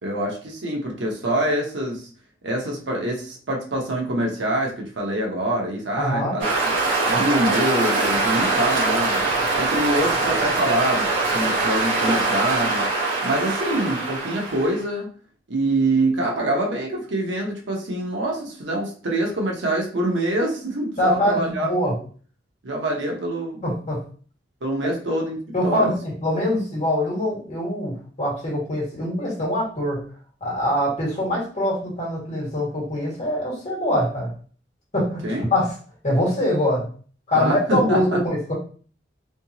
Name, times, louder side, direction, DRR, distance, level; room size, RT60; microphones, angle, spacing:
voice 1, 0.0-2.1 2.4-6.7 7.1-9.2 9.5-12.9 13.2-15.1 15.5-22.0 22.6-23.7 24.6-25.4 25.6-25.9 35.2-35.5 37.3-38.2, right 1 dB, 90° right, -1 dB, 1.0 m, -25 dB
voice 2, 6.0-6.4 21.0-22.0 23.6-24.0 25.5-30.0 30.4-34.3 34.9-35.2 35.5-35.7 36.0-36.9 37.3-38.5, left 1 dB, 40° left, -4 dB, 1.8 m, -23 dB
sound 1, 6.4-14.8, right 3 dB, 50° right, 1.4 m, -23 dB
3.4 x 2.9 x 2.8 m, 0.42 s
head